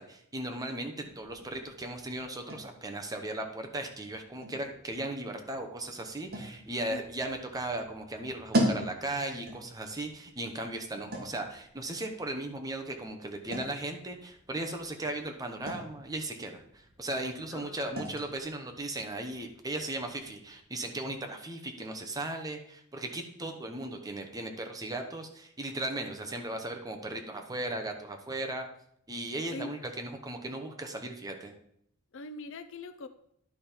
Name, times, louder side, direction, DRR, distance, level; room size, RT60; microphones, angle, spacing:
voice 1, 0.0-28.7 29.1-31.6, right 2 dB, 15° right, 4 dB, 0.9 m, -37 dB
sound 1, 1.0-20.6, right 1 dB, 50° right, 1.9 m, -40 dB
voice 2, 17.5-18.1 29.4-29.7 32.1-33.1, left 3 dB, 60° left, 10 dB, 0.6 m, -42 dB
11.0 x 5.2 x 4.4 m, 0.69 s
head